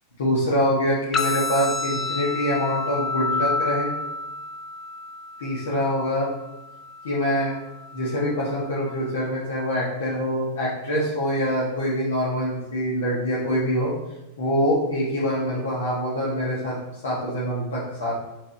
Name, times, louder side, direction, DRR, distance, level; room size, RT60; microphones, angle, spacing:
voice 1, 0.2-3.9 5.4-6.3 7.0-7.5 7.9-13.9 14.4-18.1, equal, 65° left, -6 dB, 1.5 m, -25 dB
sound 1, 1.1-9.1, left 3 dB, 20° left, 0.7 m, -30 dB
7.7 x 5.5 x 2.8 m, 0.96 s
figure-of-eight pair, 90°, 0 cm